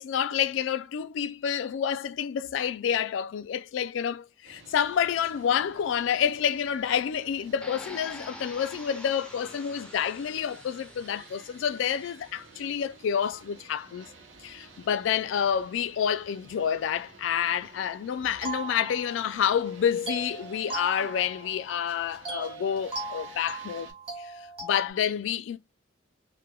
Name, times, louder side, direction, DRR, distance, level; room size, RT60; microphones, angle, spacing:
voice 1, 0.0-14.1 14.4-23.9 24.2-24.3 24.6-25.6, left 8 dB, 75° left, 0.3 m, -28 dB
sound 1, 4.4-23.9, right 4 dB, 80° right, 0.9 m, -52 dB
sound 2, 7.6-12.6, left 1 dB, 5° left, 0.4 m, -46 dB
sound 3, 18.4-19.5 20.1-21.8 22.2-24.9, right 3 dB, 30° right, 1.3 m, -38 dB
3.3 x 2.1 x 2.2 m
head